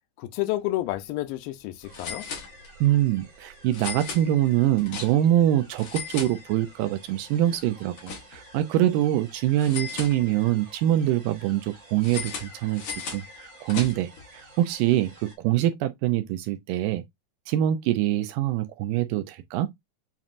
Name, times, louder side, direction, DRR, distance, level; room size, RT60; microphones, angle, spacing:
voice 1, 0.2-2.2, left 16 dB, 90° left, 2.3 m, -30 dB
sound 1, 0.7-0.9 1.2-1.3 1.9-3.0 3.7-5.4 5.7-6.9 7.2-8.6 9.6-10.7 12.0-14.2, left 6 dB, 55° left, 1.6 m, -37 dB
sound 2, 1.8-15.4, right 2 dB, 50° right, 1.5 m, -52 dB
voice 2, 2.8-17.0 17.5-19.7, right 12 dB, 80° right, 2.1 m, -24 dB
7.2 x 2.6 x 2.4 m
omnidirectional pair, 3.9 m